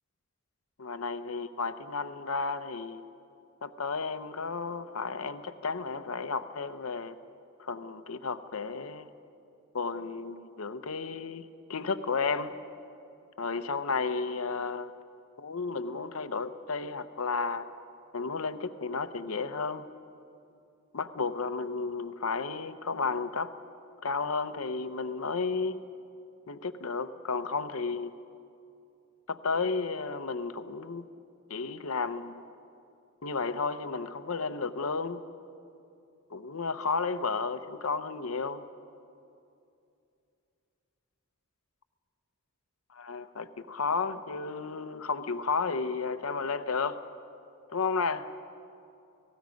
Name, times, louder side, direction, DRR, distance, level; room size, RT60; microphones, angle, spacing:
voice 1, 0.8-3.0 3.6-7.1 7.6-9.1 9.7-12.5 13.4-14.9 15.4-17.7 18.1-19.9 20.9-23.5 24.0-25.8 26.5-28.1 29.3-31.0 31.5-32.4 33.2-35.2 36.3-38.6 42.9-47.0 47.7-48.3, left 4 dB, 80° left, 11 dB, 0.8 m, -32 dB
29.5 x 18.5 x 5.2 m, 2.6 s
head